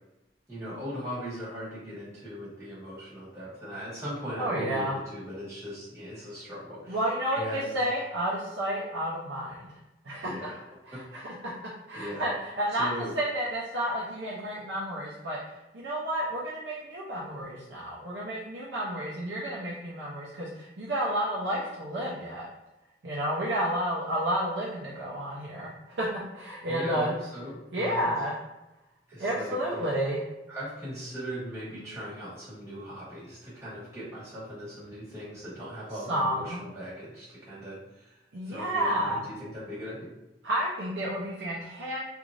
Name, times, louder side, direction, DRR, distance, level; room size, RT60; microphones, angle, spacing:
voice 1, 0.5-7.0 7.3-7.7 10.3-10.6 10.9-11.0 11.9-12.2 12.8-13.1 26.7-28.1 29.1-29.9 30.5-38.2 38.4-40.1, equal, 15° right, -11 dB, 1.5 m, -39 dB
voice 2, 4.4-4.9 6.9-9.7 10.0-10.5 10.8-11.3 11.9-12.9 13.1-22.5 23.0-26.1 26.3-27.2 27.7-28.4 29.2-30.2 36.1-36.6 38.3-39.3 40.4-42.0, right 1 dB, 80° right, -6 dB, 0.6 m, -31 dB
3.1 x 2.5 x 2.5 m, 0.96 s
head